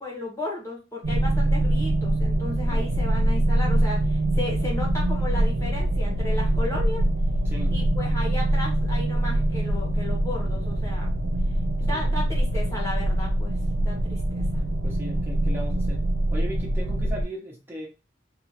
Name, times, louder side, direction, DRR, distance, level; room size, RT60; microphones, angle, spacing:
voice 1, 0.0-7.0 7.7-11.1 11.8-13.5 13.8-14.4, left 2 dB, 15° left, -3 dB, 1.4 m, -34 dB
sound 1, 1.0-17.2, right 1 dB, 60° right, 0.6 m, -24 dB
voice 2, 7.4-7.8 11.9-12.0 14.8-17.9, equal, 10° right, -4 dB, 1.3 m, -37 dB
3.5 x 3.0 x 3.0 m, 0.29 s
head